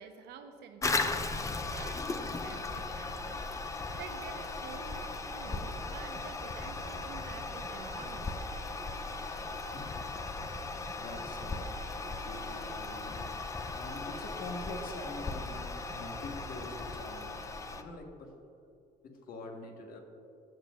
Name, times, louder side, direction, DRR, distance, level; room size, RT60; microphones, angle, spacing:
voice 1, 0.0-8.6, right 6 dB, 75° right, 6 dB, 0.8 m, -49 dB
Toilet flush, 0.8-17.8, left 3 dB, 20° left, 0.5 m, -37 dB
voice 2, 9.6-10.1 11.0-17.4 17.8-18.4 19.0-20.0, left 2 dB, 60° left, 2 dB, 1.4 m, -45 dB
16.0 x 7.2 x 2.5 m, 2.5 s
cardioid pair, 110°, 17 cm